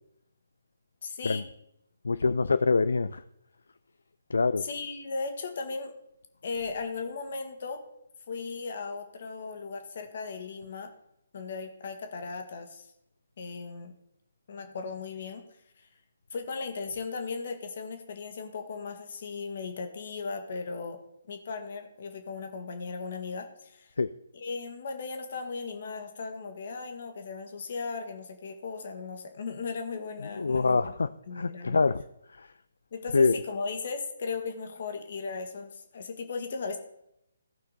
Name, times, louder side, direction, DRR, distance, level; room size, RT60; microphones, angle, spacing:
voice 1, 1.0-1.5 4.6-5.9 6.4-7.8 8.3-10.9 11.3-12.9 13.4-13.9 14.5-15.4 15.8-15.9 16.3-21.0 21.3-23.9 24.3-30.9 31.3-31.8 32.9-36.8, left 4 dB, 50° left, 6 dB, 1.7 m, -37 dB
voice 2, 2.0-3.2 4.3-4.6 24.0-24.1 30.4-31.1 31.3-32.0 32.3-32.5 33.1-33.4, left 4 dB, 70° left, 14 dB, 0.3 m, -25 dB
16.5 x 5.7 x 4.1 m, 0.80 s
figure-of-eight pair, 140°, 0 cm